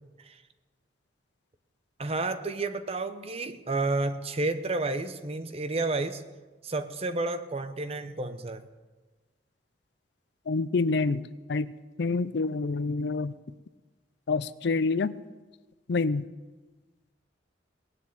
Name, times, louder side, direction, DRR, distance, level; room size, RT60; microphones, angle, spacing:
voice 1, 2.0-6.2 6.6-8.7, right 2 dB, 35° right, 10 dB, 0.9 m, -31 dB
voice 2, 10.5-11.7 12.0-13.3 14.3-15.1 15.9-16.2, left 3 dB, 65° left, 16 dB, 0.5 m, -27 dB
18.5 x 7.5 x 8.7 m, 1.3 s
head